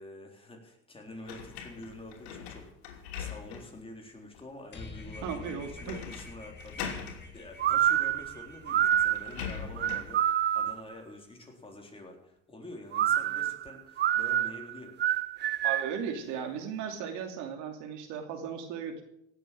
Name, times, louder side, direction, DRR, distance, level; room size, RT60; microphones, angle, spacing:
voice 1, 0.0-15.0, left 1 dB, 15° left, 2 dB, 3.8 m, -47 dB
sound 1, 1.3-3.8 4.3-4.4 5.8-6.3 6.6-7.2 8.2-8.3 8.7-10.2, left 7 dB, 85° left, 3.0 m, -41 dB
sound 2, 4.7-10.3, left 3 dB, 35° left, 3.0 m, -48 dB
voice 2, 5.2-6.0 15.6-19.0, right 7 dB, 65° right, 4 dB, 2.7 m, -36 dB
sound 3, 7.6-10.9 12.9-16.0, right 11 dB, 35° right, 0.5 m, -27 dB
17.0 x 7.8 x 7.6 m, 0.80 s
supercardioid pair, 95°, 31 cm